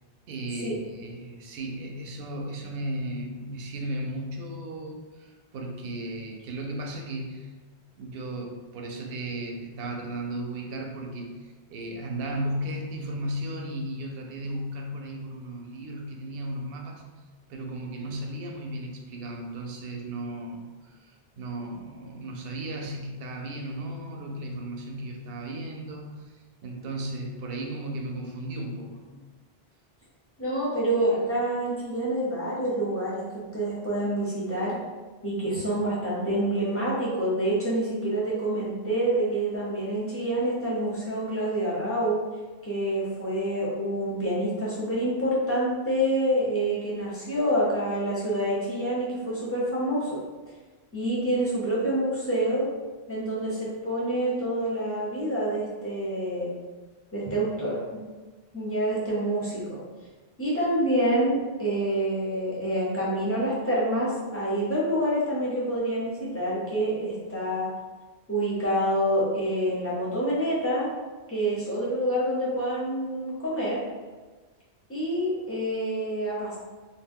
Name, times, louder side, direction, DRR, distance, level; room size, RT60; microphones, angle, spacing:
voice 1, 0.3-7.5 8.0-17.0 17.5-26.4 26.6-29.0, right 1 dB, 65° right, 1 dB, 0.7 m, -35 dB
voice 2, 30.4-34.8 35.2-42.2 42.6-50.2 50.9-52.7 53.1-56.5 57.1-57.8 58.5-59.8 60.4-67.7 68.3-70.9 71.3-73.8 74.9-76.6, right 1 dB, 15° left, -6 dB, 0.6 m, -27 dB
2.3 x 2.1 x 3.5 m, 1.3 s
omnidirectional pair, 1.1 m